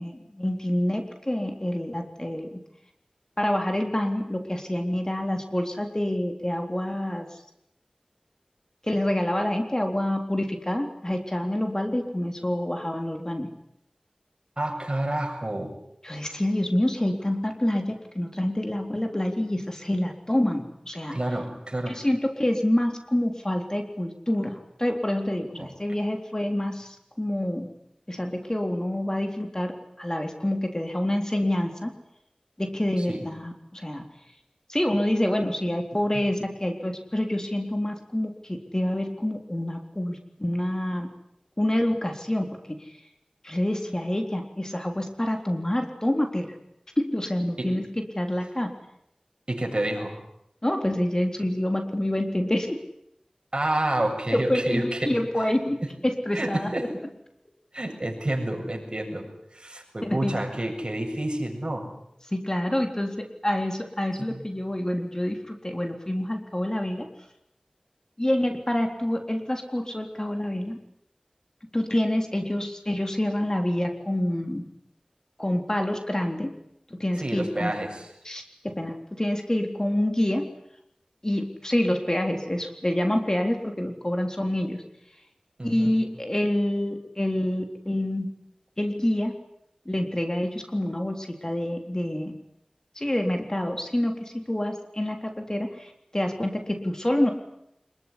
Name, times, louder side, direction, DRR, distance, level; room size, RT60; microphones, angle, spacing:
voice 1, 0.0-2.6 3.4-7.3 8.8-13.5 16.0-21.2 21.9-27.7 28.1-31.9 32.6-34.1 34.7-41.1 41.6-42.9 43.4-46.6 47.0-48.7 50.6-52.8 54.3-55.8 56.0-56.7 60.0-60.4 62.3-67.1 68.2-70.8 71.7-74.6 75.4-76.5 76.9-77.7 78.2-80.5 81.2-84.8 85.6-88.3 88.8-89.3 89.9-92.3 93.0-97.3, left 1 dB, 30° left, 4 dB, 3.7 m, -27 dB
voice 2, 14.6-15.7 21.1-22.0 25.6-25.7 33.0-33.3 47.6-47.7 49.5-50.2 53.5-55.2 56.3-57.0 57.7-59.3 59.5-61.9 64.3-64.4 77.2-78.1 85.6-85.9, right 1 dB, 45° right, 2 dB, 7.6 m, -29 dB
26.0 x 22.5 x 9.9 m, 0.76 s
wide cardioid pair, 45°, 2 cm